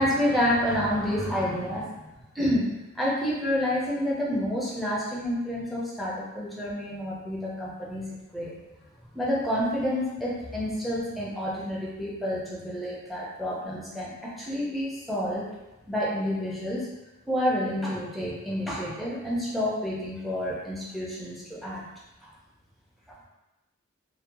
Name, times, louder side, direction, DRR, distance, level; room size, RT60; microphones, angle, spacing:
voice 1, 0.0-2.1 2.3-2.7 2.9-8.5 9.1-15.4 15.9-16.8 17.3-21.8 22.2-22.3, equal, ahead, -6 dB, 0.5 m, -29 dB
2.5 x 2.2 x 2.6 m, 1.0 s
head